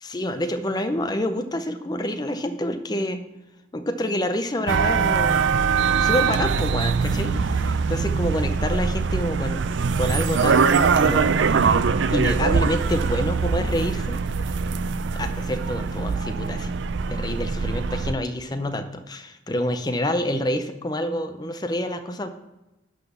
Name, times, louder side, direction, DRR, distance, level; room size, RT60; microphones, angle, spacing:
voice 1, 0.0-3.3 3.7-5.4 6.0-9.7 10.0-11.3 12.1-14.2 15.2-16.7 17.1-22.3, left 1 dB, 20° left, 8 dB, 0.6 m, -27 dB
sound 1, 4.7-18.1, right 5 dB, 65° right, 0.4 m, -22 dB
11.0 x 4.0 x 6.8 m, 0.97 s
head